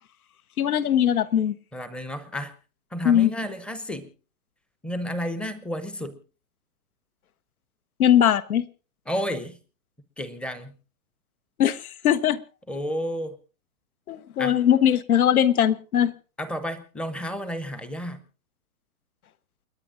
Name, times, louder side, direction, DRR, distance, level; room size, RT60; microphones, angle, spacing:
voice 1, 0.6-1.5 3.0-3.3 8.0-8.6 11.6-12.4 14.1-16.1, left 10 dB, 80° left, 1.2 m, -20 dB
voice 2, 1.7-2.5 2.9-4.1 4.8-6.2 9.1-9.6 10.2-10.7 12.7-13.4 14.4-14.6 16.4-18.2, equal, 5° left, 0.7 m, -31 dB
29.0 x 9.9 x 3.7 m
hypercardioid pair, 145°, 43 cm